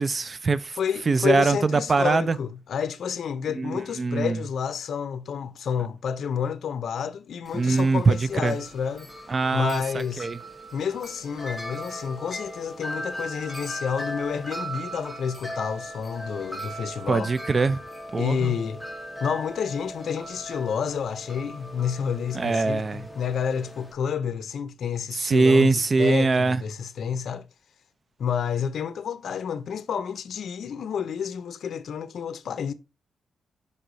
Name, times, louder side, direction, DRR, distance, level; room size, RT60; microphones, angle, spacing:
voice 1, 0.0-0.8 1.1-2.4 3.6-4.4 7.5-8.5 9.3-10.4 17.1-17.8 18.1-18.5 22.3-23.1 25.2-26.6, right 3 dB, 25° right, 0.4 m, -22 dB
voice 2, 0.8-9.1 9.5-10.3 10.7-17.3 18.2-18.8 19.2-27.4 28.2-32.7, left 7 dB, 60° left, 0.5 m, -29 dB
Wind chime, 7.5-23.9, equal, ahead, 0.8 m, -38 dB
5.5 x 4.6 x 3.9 m
wide cardioid pair, 170°, 0 cm